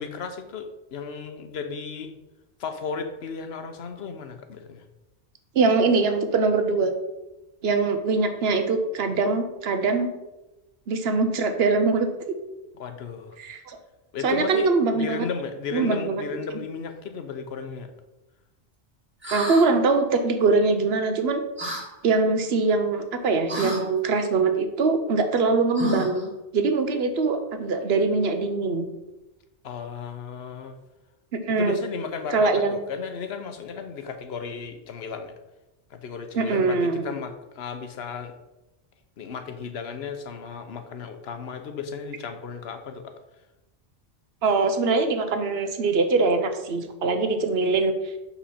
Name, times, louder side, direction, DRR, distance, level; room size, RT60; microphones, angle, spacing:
voice 1, 0.0-2.1 2.6-4.8 12.8-13.4 14.1-17.9 29.6-30.7 31.5-35.3 35.9-38.3 39.2-43.1, left 6 dB, 70° left, 8 dB, 1.0 m, -34 dB
voice 2, 5.5-6.9 7.6-10.1 10.9-12.1 13.4-13.8 14.2-15.3 15.7-16.2 19.3-21.4 22.0-28.9 31.3-31.8 32.3-32.8 36.4-37.1 44.4-47.9, right 3 dB, 65° right, 7 dB, 1.0 m, -23 dB
sound 1, 19.2-19.7 21.6-21.8 23.5-23.8 25.7-26.3, right 2 dB, 10° right, 1.4 m, -30 dB
6.3 x 5.6 x 4.2 m, 0.99 s
omnidirectional pair, 1.1 m